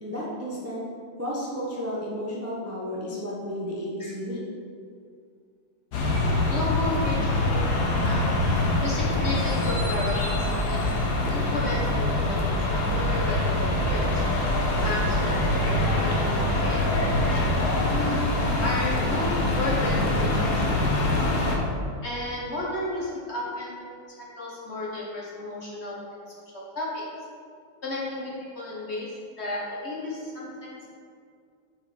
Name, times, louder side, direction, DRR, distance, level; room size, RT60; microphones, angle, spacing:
voice 1, 0.0-0.8 1.2-4.4, equal, 15° right, -6 dB, 0.6 m, -32 dB
sound 1, 5.9-21.6, left 1 dB, 60° left, 1.5 m, -24 dB
voice 2, 6.5-8.3 8.8-10.8 11.3-14.2 14.8-15.6 16.0-18.3 18.6-20.5 20.8-21.1 22.0-23.8 24.2-26.2 26.5-27.0 27.8-29.1 29.4-30.8, left 2 dB, 40° left, -5 dB, 1.4 m, -33 dB
6.4 x 4.8 x 5.0 m, 2.3 s
omnidirectional pair, 2.1 m